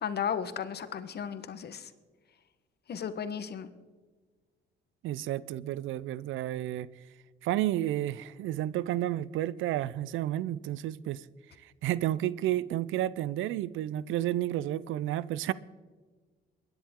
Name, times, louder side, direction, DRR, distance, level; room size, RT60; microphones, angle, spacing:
voice 1, 0.0-1.9 2.9-3.7, left 7 dB, 55° left, 1.2 m, -34 dB
voice 2, 5.0-6.9 7.4-11.2 11.6-15.5, right 13 dB, 85° right, 0.5 m, -31 dB
23.0 x 10.5 x 3.7 m
cardioid pair, 90°, 20 cm